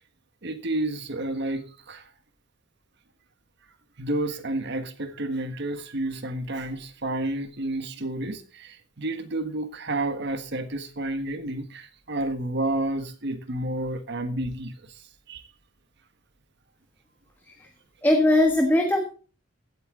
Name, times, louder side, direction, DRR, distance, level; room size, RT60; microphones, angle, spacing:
voice 1, 0.4-2.0 4.0-14.7 15.3-15.4, right 1 dB, 60° right, 1.5 m, -30 dB
voice 2, 18.0-19.0, left 1 dB, 10° left, 1.3 m, -20 dB
16.0 x 8.4 x 3.8 m
head